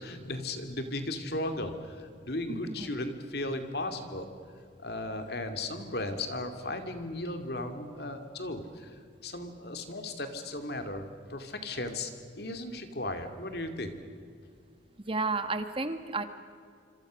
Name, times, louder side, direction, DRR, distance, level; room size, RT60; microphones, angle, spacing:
voice 1, 0.0-4.3 4.8-12.1 12.4-14.0, left 2 dB, 60° left, 7 dB, 2.6 m, -36 dB
voice 2, 2.5-2.9 15.0-16.2, right 3 dB, 30° right, 9 dB, 1.4 m, -32 dB
27.0 x 26.5 x 6.4 m, 2.3 s
head